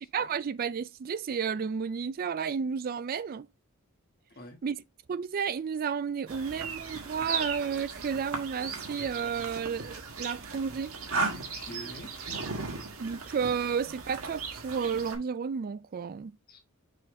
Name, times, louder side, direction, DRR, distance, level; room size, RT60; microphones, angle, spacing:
voice 1, 0.1-3.5 4.6-4.8 5.1-11.0 13.0-16.3, right 6 dB, 40° right, 0.3 m, -32 dB
sound 1, 6.3-15.2, right 4 dB, 70° right, 1.7 m, -37 dB
voice 2, 11.3-12.1 16.5-16.6, equal, 45° left, 1.5 m, -45 dB
6.4 x 4.1 x 3.7 m
head